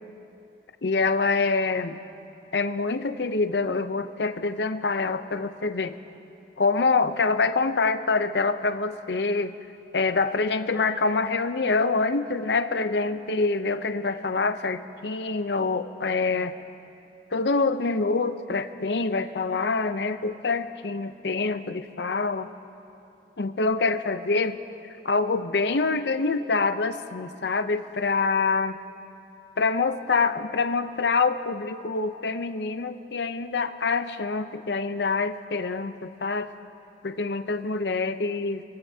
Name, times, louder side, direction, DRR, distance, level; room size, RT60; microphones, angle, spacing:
voice 1, 0.8-2.0 2.5-5.9 6.6-9.5 9.9-16.5 17.3-22.5 23.4-24.6 25.0-28.8 29.6-36.5 37.0-38.6, left 4 dB, 80° left, 10 dB, 0.6 m, -25 dB
29.0 x 16.0 x 2.8 m, 2.8 s
head